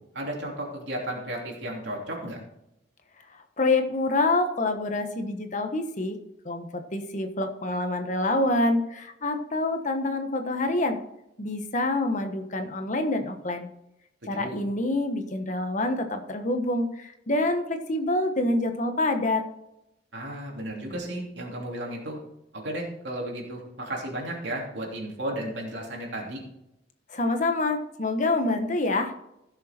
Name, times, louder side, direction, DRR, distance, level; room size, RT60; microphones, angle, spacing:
voice 1, 0.1-2.4 14.2-14.6 20.1-22.2 22.5-26.4, right 1 dB, 65° right, -1 dB, 2.9 m, -34 dB
voice 2, 3.3-6.2 6.4-11.0 11.4-13.7 14.2-19.4 27.1-29.1, left 2 dB, 40° left, 6 dB, 1.2 m, -26 dB
16.0 x 6.7 x 4.4 m, 0.85 s
head